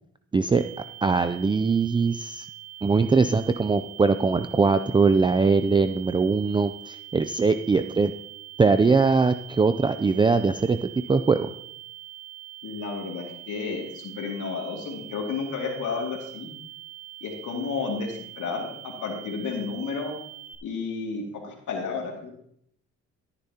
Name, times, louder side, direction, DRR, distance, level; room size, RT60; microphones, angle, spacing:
voice 1, 0.3-0.6 1.0-2.5 2.8-8.1 8.6-11.5, right 4 dB, 15° right, 10 dB, 0.4 m, -21 dB
sound 1, 0.6-20.6, right 14 dB, 50° right, 1.6 m, -43 dB
voice 2, 12.6-16.5 17.2-20.1 20.6-22.3, left 4 dB, 80° left, 0 dB, 2.4 m, -32 dB
14.0 x 9.9 x 2.9 m, 0.71 s
cardioid pair, 90°, 30 cm